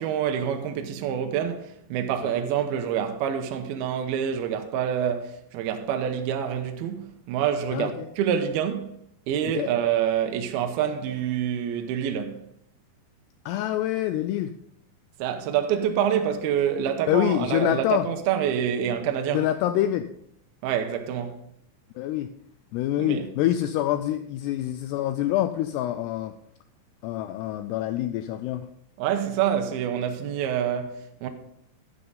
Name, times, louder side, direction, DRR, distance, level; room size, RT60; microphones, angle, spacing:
voice 1, 0.0-8.9 9.3-12.4 15.2-19.5 20.6-21.4 23.0-23.3 29.0-31.3, right 9 dB, 80° right, 2.3 m, -27 dB
voice 2, 7.7-8.1 9.5-9.7 13.5-14.5 17.1-18.1 19.3-20.1 22.0-22.3 22.7-26.3 27.0-28.7, left 12 dB, 90° left, 2.3 m, -26 dB
11.5 x 9.7 x 3.9 m
omnidirectional pair, 5.3 m